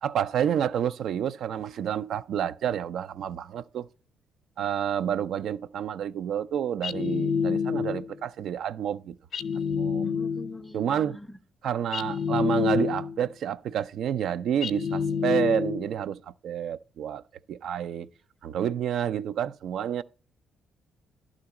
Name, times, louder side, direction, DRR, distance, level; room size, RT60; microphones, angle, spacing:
voice 1, 0.0-3.9 4.6-9.2 9.7-10.1 10.7-11.2 11.6-16.2 16.4-17.2 17.5-18.1 18.4-20.0, right 9 dB, 70° right, 0.3 m, -29 dB
sound 1, 6.8-8.2 9.3-10.7 11.9-13.3 14.6-16.0, left 6 dB, 60° left, 0.6 m, -28 dB
voice 2, 10.0-11.4, left 1 dB, 5° left, 0.5 m, -42 dB
11.0 x 3.8 x 7.0 m
cardioid pair, 90°, 0 cm